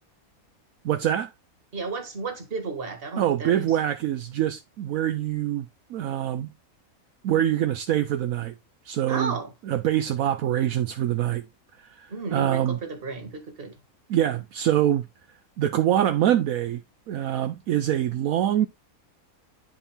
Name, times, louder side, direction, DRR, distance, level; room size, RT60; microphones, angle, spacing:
voice 1, 0.8-1.3 3.2-6.5 7.2-8.6 8.8-9.4 9.6-11.4 11.8-12.8 14.1-15.1 15.6-16.8 17.1-18.7, right 11 dB, 75° right, 1.0 m, -24 dB
voice 2, 1.7-3.7 9.1-9.5 12.1-13.7, right 4 dB, 40° right, 1.7 m, -33 dB
10.0 x 4.2 x 3.6 m
omnidirectional pair, 1.5 m